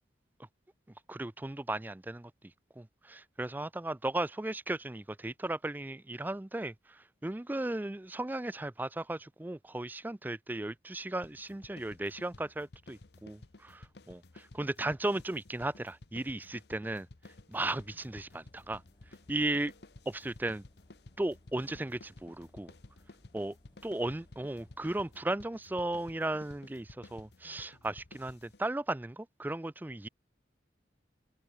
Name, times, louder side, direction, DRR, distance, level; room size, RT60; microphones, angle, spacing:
voice 1, 1.1-2.3 2.8-6.7 7.2-17.1 17.5-18.8 19.3-19.7 20.1-20.6 21.2-22.7 23.3-23.5 23.8-30.1, right 2 dB, 10° right, 0.3 m, -36 dB
sound 1, 11.2-28.7, left 2 dB, 60° left, 1.0 m, -55 dB
Engine, 17.7-25.2, equal, 25° left, 5.2 m, -66 dB
head